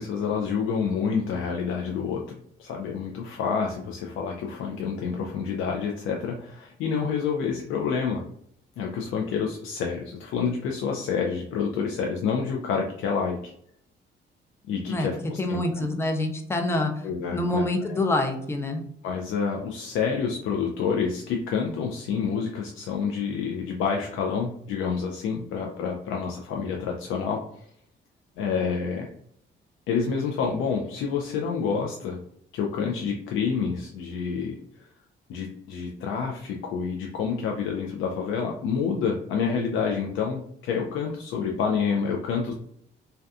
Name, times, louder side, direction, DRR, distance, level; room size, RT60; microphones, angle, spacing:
voice 1, 0.0-8.2 8.8-13.5 14.7-15.9 17.0-17.6 17.9-18.0 19.0-27.6 28.4-29.1 29.9-32.2 32.5-34.9 35.3-42.5, left 6 dB, 85° left, 1 dB, 0.4 m, -28 dB
voice 2, 15.4-18.8, left 1 dB, 15° left, 5 dB, 0.4 m, -26 dB
2.6 x 2.2 x 2.3 m, 0.66 s
cardioid pair, 90°, 20 cm